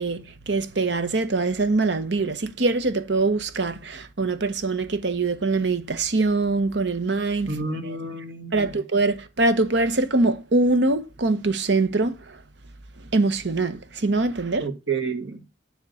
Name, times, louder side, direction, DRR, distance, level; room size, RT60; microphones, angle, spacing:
voice 1, 0.0-7.5 8.5-12.1 13.1-14.6, right 3 dB, 65° right, 0.9 m, -23 dB
voice 2, 7.5-8.8 14.6-15.5, right 4 dB, 85° right, 1.9 m, -30 dB
9.8 x 3.7 x 6.9 m
head